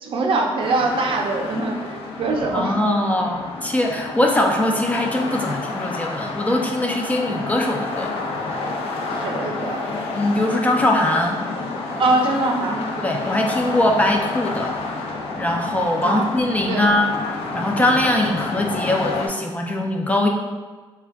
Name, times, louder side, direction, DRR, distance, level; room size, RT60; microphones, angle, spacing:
voice 1, 0.0-2.8 9.1-9.8 12.0-12.9 16.0-16.9, right 3 dB, 60° right, 2 dB, 0.4 m, -23 dB
sound 1, 0.6-19.3, left 3 dB, 85° left, 0.5 m, -29 dB
voice 2, 2.5-8.1 10.1-11.4 13.0-14.7 15.4-17.1 17.5-20.3, left 1 dB, 15° left, 1 dB, 0.3 m, -21 dB
3.4 x 2.2 x 3.4 m, 1.3 s
cardioid pair, 130°, 10 cm